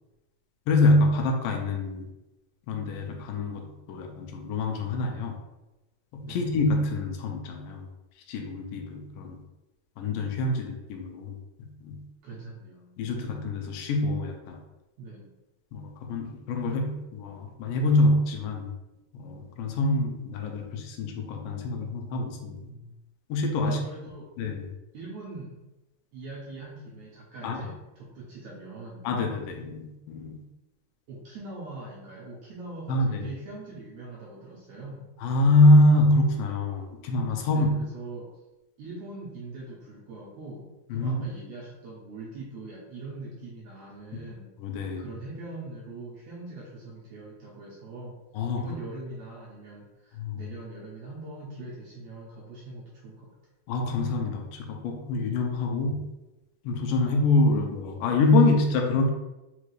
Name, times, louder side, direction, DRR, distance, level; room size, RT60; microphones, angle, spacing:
voice 1, 0.7-2.1 2.7-5.4 6.1-7.9 8.3-9.4 10.0-12.0 13.0-14.6 15.7-18.7 19.1-22.7 23.3-23.8 24.4-24.7 27.4-27.7 29.0-30.4 32.9-33.3 35.2-37.7 40.9-41.3 44.6-45.1 48.3-48.6 50.2-50.4 53.7-56.1 56.6-59.1, left 2 dB, 80° left, 2 dB, 2.2 m, -25 dB
voice 2, 12.2-12.9 15.0-15.3 22.5-23.0 23.6-24.3 24.9-25.6 26.1-29.1 31.1-35.1 37.5-38.3 38.8-40.6 40.9-44.5 45.0-48.2 48.5-53.3, right 2 dB, 75° right, -5 dB, 1.7 m, -42 dB
5.3 x 2.4 x 3.1 m, 1.0 s
omnidirectional pair, 3.9 m